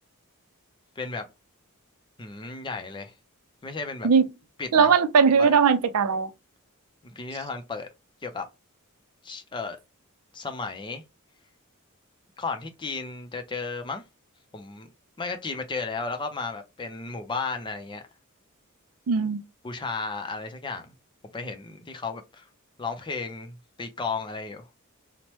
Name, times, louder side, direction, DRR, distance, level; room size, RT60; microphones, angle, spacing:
voice 1, 1.0-1.3 2.2-3.1 3.6-4.1 4.6-4.9 5.4-5.6 7.0-7.9 8.2-8.5 9.2-9.8 10.3-11.0 12.4-14.0 14.5-14.9 15.2-18.0 19.6-20.9 21.2-22.4 22.8-24.6, left 4 dB, 20° left, 0.5 m, -34 dB
voice 2, 4.7-6.3 19.1-19.4, right 6 dB, 75° right, 0.4 m, -19 dB
3.1 x 2.1 x 2.9 m
head